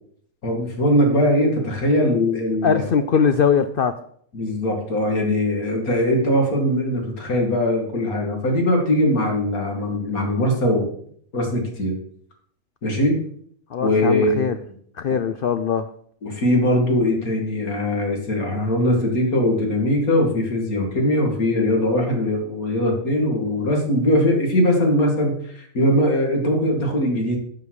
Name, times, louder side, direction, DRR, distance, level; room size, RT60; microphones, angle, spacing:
voice 1, 0.4-2.8 4.3-10.9 11.3-11.9 12.8-13.2 13.8-14.4 16.2-27.4, left 1 dB, 65° left, 1 dB, 2.8 m, -21 dB
voice 2, 2.6-3.9 13.7-14.6 15.0-15.9, left 7 dB, 85° left, 10 dB, 0.4 m, -21 dB
10.5 x 7.0 x 4.9 m, 0.63 s
omnidirectional pair, 1.6 m